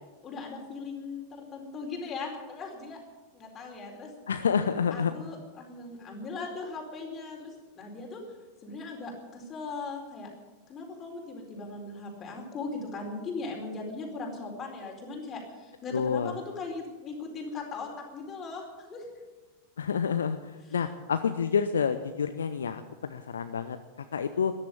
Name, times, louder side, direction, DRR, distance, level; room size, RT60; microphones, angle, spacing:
voice 1, 0.2-3.0 3.3-4.1 4.9-8.2 8.6-10.3 10.7-19.2 20.7-20.8, left 3 dB, 25° left, 0 dB, 4.4 m, -39 dB
voice 2, 4.3-5.1 15.9-16.3 19.8-23.8 24.1-24.5, left 6 dB, 70° left, 10 dB, 0.7 m, -28 dB
14.0 x 10.5 x 9.8 m, 1.2 s
figure-of-eight pair, 90°, 0 cm